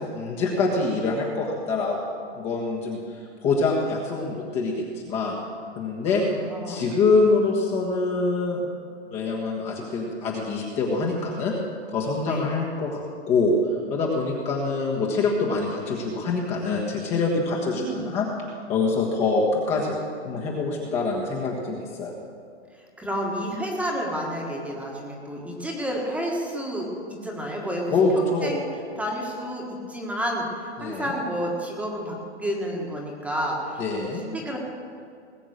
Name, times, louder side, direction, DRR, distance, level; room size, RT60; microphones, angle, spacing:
voice 1, 0.0-2.0 2.3-3.0 3.4-5.3 5.7-6.2 6.7-8.7 9.1-11.5 11.9-13.5 13.9-18.3 18.7-20.0 20.2-22.1 27.9-28.5 30.8-31.1 33.8-34.2, left 3 dB, 20° left, -3 dB, 1.5 m, -25 dB
voice 2, 6.1-6.8 12.2-12.4 17.4-18.1 23.0-26.9 27.2-27.9 28.2-28.7 29.0-33.8 34.1-34.6, equal, 5° right, -1 dB, 1.7 m, -30 dB
19.5 x 7.8 x 6.5 m, 2.3 s
hypercardioid pair, 155°, 35 cm